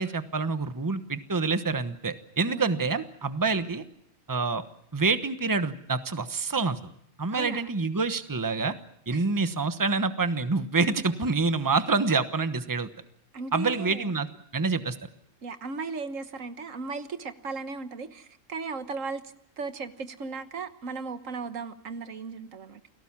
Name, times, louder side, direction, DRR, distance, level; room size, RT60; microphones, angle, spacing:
voice 1, 0.0-3.8 4.3-4.6 4.9-6.8 7.2-8.7 9.1-12.9 13.5-14.3 14.5-15.0, right 4 dB, 15° right, 10 dB, 1.1 m, -27 dB
voice 2, 2.5-2.8 7.3-7.7 9.1-9.2 13.3-14.1 15.4-22.8, right 4 dB, 80° right, 10 dB, 1.6 m, -36 dB
29.0 x 18.5 x 7.3 m, 0.70 s
omnidirectional pair, 1.3 m